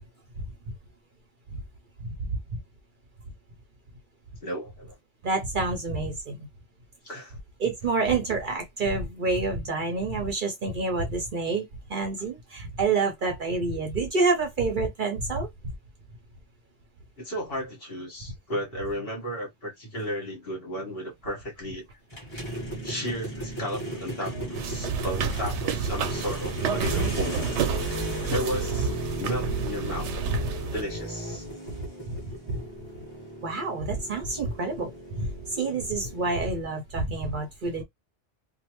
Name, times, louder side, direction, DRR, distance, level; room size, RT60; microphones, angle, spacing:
voice 1, 4.4-4.9 7.0-7.4 17.2-21.8 22.8-27.6 28.3-28.9 29.2-30.1 30.7-31.4, equal, 55° left, 1.6 m, -34 dB
voice 2, 5.2-6.5 7.6-15.5 28.0-28.1 30.3-30.4 32.1-32.2 32.5-32.6 33.4-37.8, right 3 dB, 50° right, 0.7 m, -28 dB
sound 1, 22.1-36.4, right 1 dB, 25° left, 1.5 m, -36 dB
sound 2, 24.5-30.8, right 6 dB, 80° right, 0.9 m, -30 dB
3.1 x 2.2 x 3.0 m
omnidirectional pair, 1.2 m